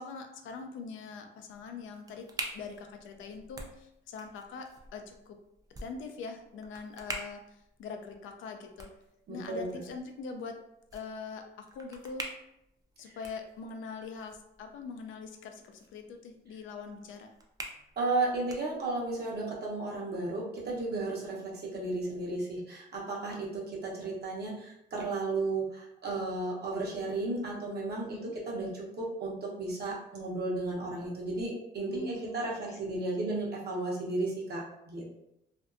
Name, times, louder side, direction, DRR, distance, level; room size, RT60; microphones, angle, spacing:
voice 1, 0.0-2.3 2.5-5.4 5.8-8.9 9.3-10.6 10.9-12.3 13.0-17.3 28.1-28.3 31.9-33.0, left 4 dB, 80° left, 5 dB, 0.4 m, -43 dB
sound 1, 1.5-19.2, right 2 dB, 20° right, 0.4 m, -47 dB
voice 2, 9.3-9.8 18.0-35.2, right 2 dB, 55° right, -4 dB, 0.9 m, -34 dB
2.6 x 2.2 x 2.4 m, 0.82 s
cardioid pair, 90°, 20 cm